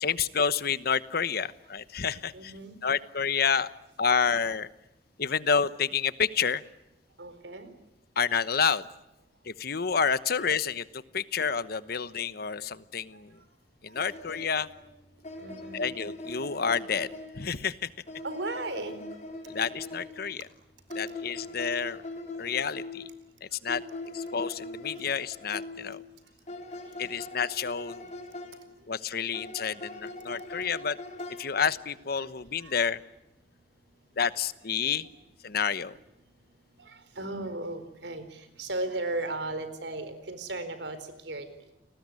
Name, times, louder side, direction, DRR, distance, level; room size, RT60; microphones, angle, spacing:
voice 1, 0.0-2.5 2.8-3.7 4.0-4.7 5.2-6.6 8.2-8.9 9.4-13.4 13.8-14.7 15.7-17.1 17.3-17.9 19.5-20.5 20.9-22.0 22.4-23.0 23.4-23.8 24.1-26.0 27.0-28.1 28.9-31.0 31.4-33.0 34.2-35.1 35.4-36.0, left 6 dB, 60° left, 15 dB, 1.1 m, -29 dB
voice 2, 2.3-2.8 7.2-7.7 15.4-15.8 18.2-19.0 32.6-32.7 36.8-41.0 41.2-41.5, right 2 dB, 85° right, 11 dB, 4.3 m, -35 dB
sound 1, 13.9-17.6 18.1-20.4 20.9-23.2 23.7-26.1 26.5-28.7 29.3-32.0, left 2 dB, 45° left, 5.4 m, -41 dB
30.0 x 20.0 x 9.7 m, 0.91 s
head